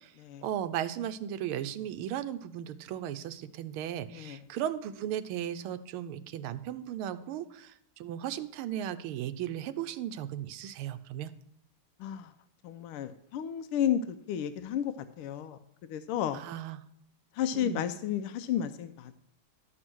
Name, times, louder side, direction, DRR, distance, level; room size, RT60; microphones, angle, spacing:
voice 1, 0.4-11.3 16.3-16.8 17.5-17.8, right 10 dB, 85° right, 1.5 m, -36 dB
voice 2, 12.0-12.3 12.6-16.4 17.3-19.1, left 9 dB, 85° left, 1.5 m, -32 dB
12.5 x 6.2 x 6.1 m
omnidirectional pair, 2.4 m